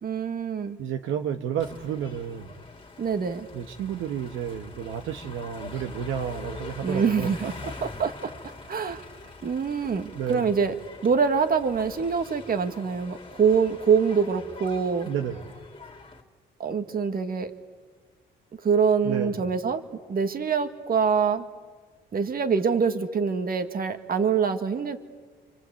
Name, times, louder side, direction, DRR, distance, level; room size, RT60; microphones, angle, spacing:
voice 1, 0.0-0.8 3.0-3.5 6.8-8.3 8.7-9.0 9.4-10.7 11.0-15.1 16.6-17.5 18.6-19.8 20.1-21.5 22.1-25.0, right 6 dB, 50° right, 8 dB, 2.0 m, -25 dB
voice 2, 0.8-2.5 3.5-7.5 10.1-10.5 15.1-15.5 19.0-19.5, right 8 dB, 85° right, 5 dB, 1.4 m, -31 dB
sound 1, 1.6-16.2, left 3 dB, 25° left, 2.8 m, -44 dB
28.0 x 25.0 x 8.4 m, 1.5 s
cardioid pair, 90°, 20 cm